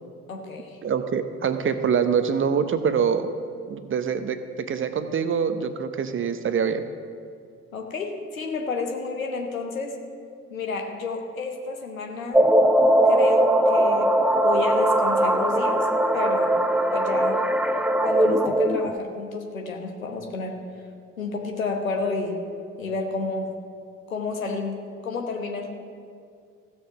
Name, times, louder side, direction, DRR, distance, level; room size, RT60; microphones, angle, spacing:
voice 1, 0.3-0.8 7.7-10.0 10.5-12.4 13.1-14.1 14.4-15.9 16.1-16.6 16.9-17.5 18.0-20.6 21.2-22.4 22.8-23.5 24.1-25.7, left 4 dB, 85° left, 2 dB, 1.1 m, -30 dB
voice 2, 0.8-3.3 3.7-6.8, right 7 dB, 30° right, 10 dB, 0.8 m, -25 dB
sound 1, 12.3-19.0, right 1 dB, 5° right, 0.4 m, -20 dB
15.5 x 6.5 x 5.7 m, 2.3 s
figure-of-eight pair, 45°, 40 cm